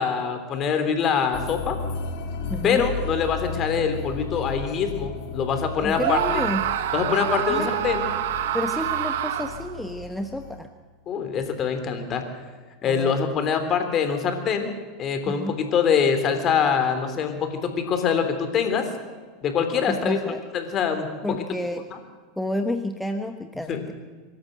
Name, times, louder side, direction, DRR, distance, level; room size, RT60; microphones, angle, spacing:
voice 1, 0.0-1.8 2.6-6.2 6.9-8.1 11.1-12.2 12.8-14.7 15.0-18.9 19.4-20.2 20.5-21.1 21.9-22.0 23.7-23.8, left 6 dB, 40° left, 7 dB, 3.5 m, -24 dB
sound 1, 1.3-10.6, left 4 dB, 60° left, 2.4 m, -34 dB
voice 2, 2.5-2.8 5.8-6.7 7.5-7.7 8.5-10.7 12.8-13.2 15.3-15.6 19.9-20.4 21.2-21.9 22.4-23.9, left 1 dB, 5° left, 6 dB, 1.2 m, -30 dB
Screaming, 6.0-9.8, right 11 dB, 65° right, 1.2 m, -27 dB
24.5 x 13.0 x 8.0 m, 1.5 s
hypercardioid pair, 85°, 0 cm